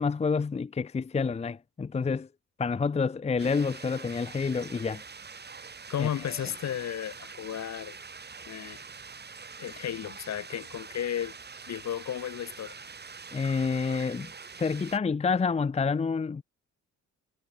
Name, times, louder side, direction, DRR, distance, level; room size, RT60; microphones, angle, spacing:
voice 1, 0.0-2.3 2.6-5.0 6.0-6.1 13.3-14.3 14.6-16.4, left 5 dB, 20° left, 0.6 m, -28 dB
sound 1, 3.4-15.0, right 5 dB, 35° right, 4.7 m, -45 dB
voice 2, 5.9-7.9 8.5-8.8 9.6-11.3 11.7-12.8, left 10 dB, 60° left, 3.4 m, -34 dB
cardioid pair, 90°, 30 cm